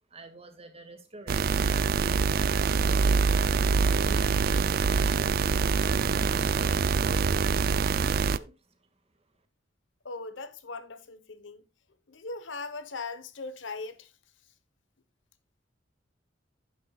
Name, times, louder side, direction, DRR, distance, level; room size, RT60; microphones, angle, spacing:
voice 1, 0.1-2.5 2.8-3.2 7.9-8.5, right 2 dB, 35° right, 1.9 m, -47 dB
sound 1, 1.3-8.4, right 5 dB, 50° right, 0.4 m, -25 dB
voice 2, 10.0-11.7 12.1-14.1, left 3 dB, 90° left, 1.1 m, -39 dB
11.5 x 9.3 x 2.3 m
head